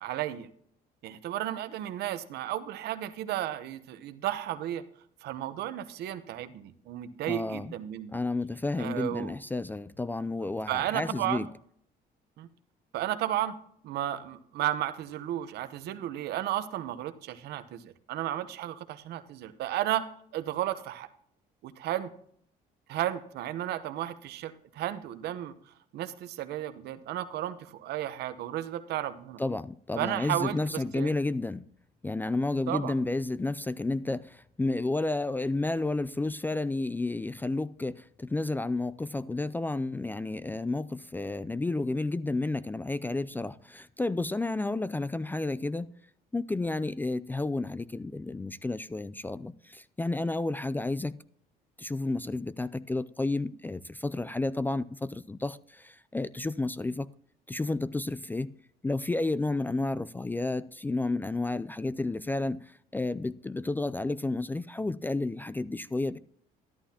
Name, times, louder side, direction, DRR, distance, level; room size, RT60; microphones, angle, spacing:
voice 1, 0.0-0.5 1.0-4.8 5.2-8.2 8.8-9.3 10.7-11.5 12.4-12.5 12.9-13.6 13.8-20.1 20.3-21.1 21.6-22.1 22.9-25.5 25.9-29.4 30.0-31.1 32.7-32.9, right 12 dB, 75° right, 0.9 m, -33 dB
voice 2, 7.3-7.7 8.1-11.5 29.4-31.6 32.0-45.9 46.3-51.2 51.8-57.1 57.5-58.5 58.8-66.2, left 2 dB, 10° left, 0.3 m, -31 dB
13.0 x 11.5 x 2.9 m
cardioid pair, 110°, 17 cm